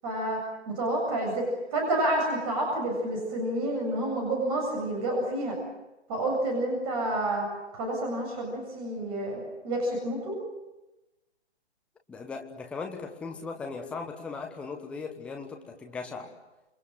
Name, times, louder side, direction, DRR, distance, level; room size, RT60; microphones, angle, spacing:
voice 1, 0.0-5.6 6.1-10.4, right 1 dB, 25° right, 0 dB, 7.6 m, -29 dB
voice 2, 12.1-16.3, left 4 dB, 5° left, 3 dB, 1.2 m, -38 dB
28.5 x 25.0 x 7.7 m, 1.0 s
figure-of-eight pair, 145°, 34 cm